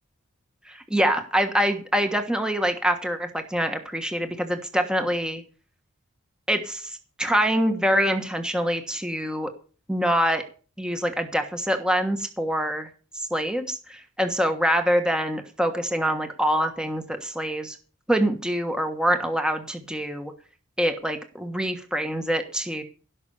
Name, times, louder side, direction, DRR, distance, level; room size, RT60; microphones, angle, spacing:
voice 1, 0.7-5.4 6.5-9.5 9.9-10.4 10.8-12.9 13.1-17.8 18.1-20.3 20.8-22.8, equal, 5° right, 6 dB, 1.3 m, -25 dB
17.0 x 6.2 x 6.9 m, 0.37 s
head